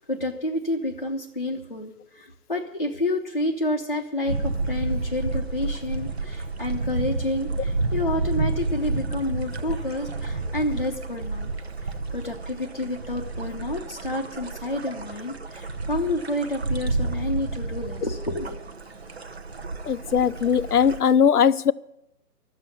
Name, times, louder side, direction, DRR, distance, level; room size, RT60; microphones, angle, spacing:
voice 1, 0.0-11.6 12.1-18.6, left 1 dB, 30° left, 0.7 m, -29 dB
sound 1, 4.3-21.0, right 3 dB, 40° right, 0.9 m, -30 dB
voice 2, 19.9-21.7, left 7 dB, 70° left, 0.7 m, -19 dB
13.0 x 7.8 x 9.9 m
hypercardioid pair, 175°, 47 cm